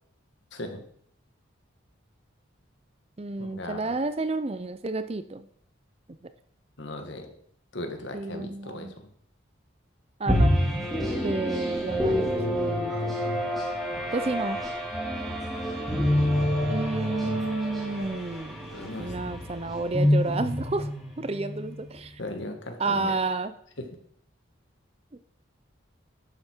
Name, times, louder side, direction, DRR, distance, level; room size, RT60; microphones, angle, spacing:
voice 1, 0.5-0.8 3.4-4.0 6.8-7.3 7.7-9.1 18.7-19.5 22.2-23.2 23.8-23.9, left 1 dB, 65° left, 5 dB, 1.7 m, -38 dB
voice 2, 3.2-5.5 8.1-8.9 10.2-10.5 11.2-13.1 14.1-14.6 16.7-20.9 21.2-22.2 22.8-23.5 25.1-25.2, right 3 dB, 30° right, 12 dB, 0.5 m, -31 dB
sound 1, 10.3-21.9, equal, ahead, 2.5 m, -27 dB
11.5 x 8.3 x 4.5 m, 0.65 s
head